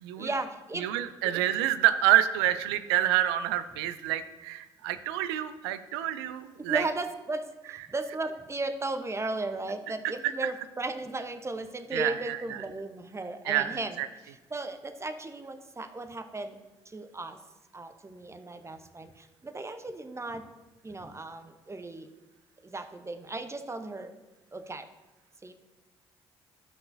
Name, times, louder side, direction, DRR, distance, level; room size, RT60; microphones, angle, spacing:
voice 1, 0.2-0.9 1.2-1.4 6.7-16.6 16.8-17.4 17.7-20.5 20.8-22.1 22.6-24.1 24.5-24.9 25.4-25.5, right 2 dB, 20° right, 8 dB, 0.9 m, -36 dB
voice 2, 0.8-6.8 10.2-10.3 11.9-12.4 13.5-14.1, right 12 dB, 75° right, 12 dB, 0.4 m, -27 dB
12.5 x 5.6 x 2.7 m, 1.1 s
hypercardioid pair, 50°, 13 cm